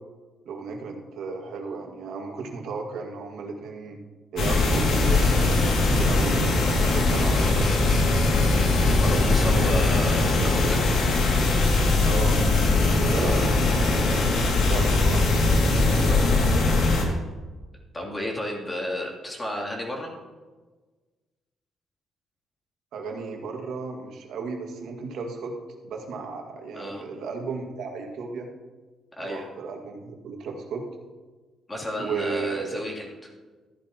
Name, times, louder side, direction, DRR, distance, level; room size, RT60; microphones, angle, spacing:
voice 1, 0.5-4.0 4.3-7.8 12.0-12.4 12.9-14.0 14.5-15.2 22.9-25.5 25.8-28.5 29.2-30.8 32.0-32.8, right 4 dB, 75° right, 2 dB, 1.9 m, -34 dB
sound 1, 4.4-17.1, left 2 dB, 75° left, 2.3 m, -21 dB
voice 2, 9.0-10.8 13.2-13.4 15.9-17.2 17.9-20.1 26.7-27.1 29.1-29.4 31.7-33.1, left 1 dB, 20° left, -2 dB, 2.9 m, -33 dB
14.0 x 10.5 x 2.9 m, 1.3 s
cardioid pair, 90°, 0 cm